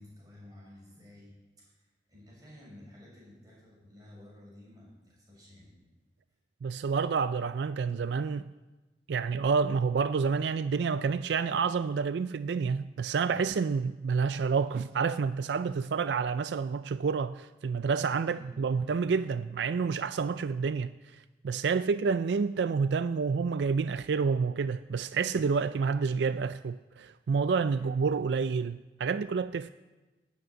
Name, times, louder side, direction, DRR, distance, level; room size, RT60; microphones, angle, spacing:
voice 1, 0.0-5.8 18.2-18.5 27.8-27.9, left 1 dB, 20° right, 6.7 m, -53 dB
voice 2, 6.6-8.5 9.1-20.9 21.4-29.7, right 5 dB, 75° right, 0.4 m, -29 dB
12.5 x 9.4 x 9.0 m
head